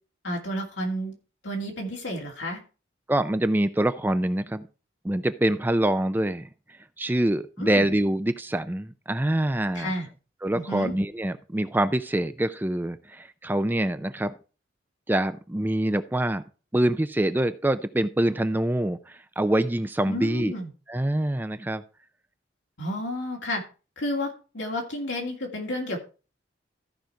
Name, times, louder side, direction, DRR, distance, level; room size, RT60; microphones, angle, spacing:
voice 1, 0.2-1.1 1.4-2.6 7.6-7.9 9.7-10.1 10.5-10.9 20.1-20.7 22.8-23.6 24.0-26.0, left 1 dB, 75° left, 0 dB, 2.9 m, -31 dB
voice 2, 3.1-4.6 5.0-6.5 7.0-9.9 10.4-14.3 15.1-16.4 16.7-20.5 20.9-21.8, right 1 dB, 10° right, 11 dB, 0.4 m, -25 dB
14.0 x 5.2 x 4.5 m, 0.35 s
head